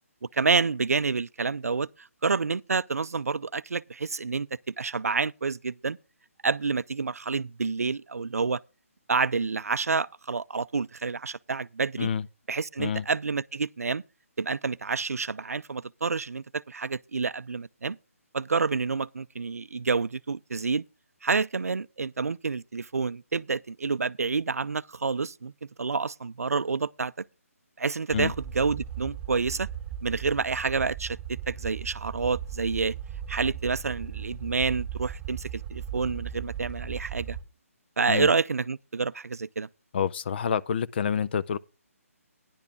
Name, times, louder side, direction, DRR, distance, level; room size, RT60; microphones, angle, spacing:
voice 1, 0.2-6.0 6.4-8.6 9.1-12.1 12.5-14.0 14.4-18.0 18.3-20.8 21.2-25.5 25.8-27.2 27.8-29.7 30.0-33.0 33.3-37.4 38.0-39.7, right 4 dB, 80° right, 0.4 m, -28 dB
sound 1, 28.1-37.4, right 9 dB, 15° right, 2.0 m, -37 dB
voice 2, 39.9-41.6, left 7 dB, 45° left, 0.6 m, -28 dB
10.5 x 8.6 x 4.6 m
figure-of-eight pair, 150°, 8 cm